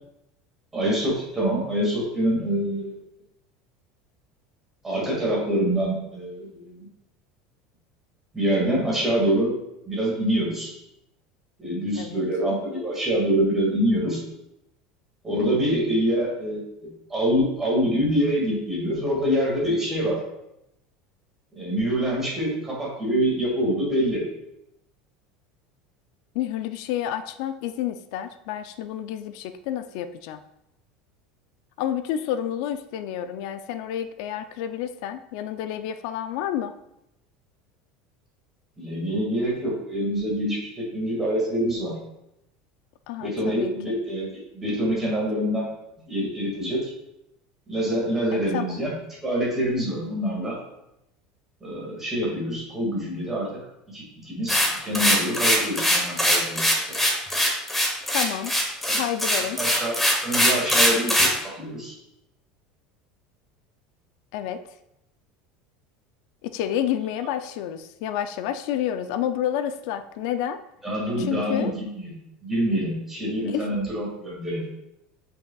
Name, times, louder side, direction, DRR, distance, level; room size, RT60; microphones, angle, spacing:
voice 1, 0.7-3.0 4.8-6.9 8.3-9.5 9.9-10.7 11.6-14.2 15.2-20.2 21.6-24.2 38.8-41.9 43.2-44.3 44.5-45.7 46.1-46.9 47.7-48.9 49.2-50.6 51.6-53.5 53.9-57.0 58.8-59.0 59.6-60.0 60.2-61.3 61.6-62.0 70.8-72.2 72.4-74.7, equal, 15° right, -4 dB, 2.0 m, -25 dB
voice 2, 26.3-30.4 31.8-36.7 43.1-43.7 48.3-48.7 58.1-58.5 58.9-59.6 64.3-64.6 66.4-70.6 71.2-71.7 73.4-73.7, left 10 dB, 65° left, 9 dB, 0.4 m, -29 dB
sound 1, 54.5-61.4, equal, 5° left, 1.1 m, -21 dB
8.0 x 5.4 x 2.3 m, 0.84 s
cardioid pair, 160°, 3 cm